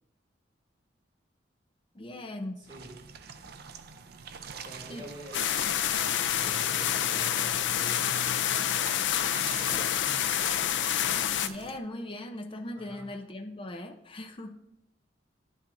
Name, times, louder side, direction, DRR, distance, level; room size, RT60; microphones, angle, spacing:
voice 1, 1.9-2.7 4.9-5.0 11.4-14.6, left 1 dB, 30° left, 4 dB, 0.6 m, -39 dB
voice 2, 2.6-2.9 3.4-3.5 4.5-5.8 6.2-8.1 9.4-9.9 12.7-13.1, equal, 20° right, -4 dB, 2.5 m, -47 dB
sound 1, 2.6-11.8, right 6 dB, 55° right, 0.5 m, -45 dB
sound 2, 5.3-11.5, left 10 dB, 75° left, 0.4 m, -28 dB
11.0 x 7.4 x 2.5 m, 0.80 s
head